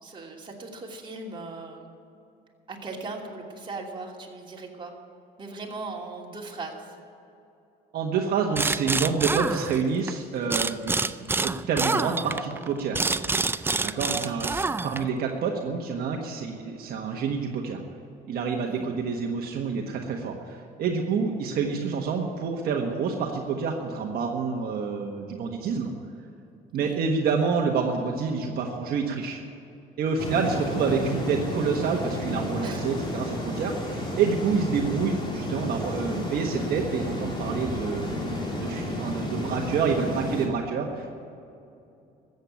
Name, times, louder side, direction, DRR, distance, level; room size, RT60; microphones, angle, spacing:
voice 1, 0.0-1.9 2.7-4.9 5.4-6.9 11.0-11.3 14.1-14.6 18.6-18.9 26.8-27.0 32.6-32.8, right 3 dB, 30° right, -2 dB, 2.8 m, -39 dB
voice 2, 7.9-11.0 11.4-13.0 13.6-17.8 18.3-25.9 26.7-29.4 30.0-41.2, right 5 dB, 65° right, 1 dB, 1.4 m, -28 dB
sound 1, 8.5-10.1 10.5-15.2, right 3 dB, 15° right, 0.4 m, -27 dB
sound 2, 30.2-40.5, left 1 dB, 30° left, 3.5 m, -32 dB
14.0 x 8.1 x 9.3 m, 2.6 s
cardioid pair, 110°, 17 cm